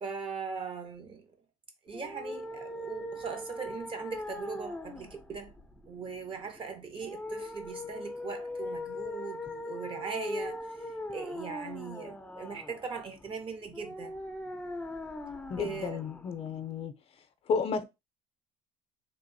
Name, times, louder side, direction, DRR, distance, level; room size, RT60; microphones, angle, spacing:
voice 1, 0.0-1.3 1.8-5.5 5.9-14.1 15.6-16.0, right 5 dB, 40° right, 0.9 m, -40 dB
sound 1, 1.9-16.9, left 1 dB, 5° left, 0.5 m, -41 dB
voice 2, 15.5-16.9 17.5-17.8, left 5 dB, 50° left, 0.6 m, -32 dB
3.4 x 2.4 x 2.7 m
supercardioid pair, 95°, 14 cm